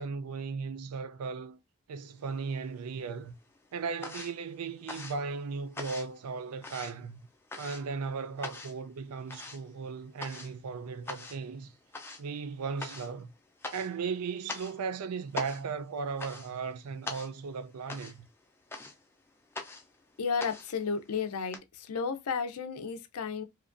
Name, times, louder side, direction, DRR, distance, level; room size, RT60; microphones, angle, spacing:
voice 1, 0.0-1.6 1.9-3.3 3.7-7.2 7.6-11.7 12.2-13.3 13.7-18.3, right 5 dB, 85° right, 0.4 m, -36 dB
sound 1, 2.2-3.0 3.3-21.6, left 3 dB, 10° left, 0.4 m, -44 dB
voice 2, 20.2-23.4, left 5 dB, 80° left, 0.5 m, -33 dB
2.9 x 2.2 x 2.5 m
head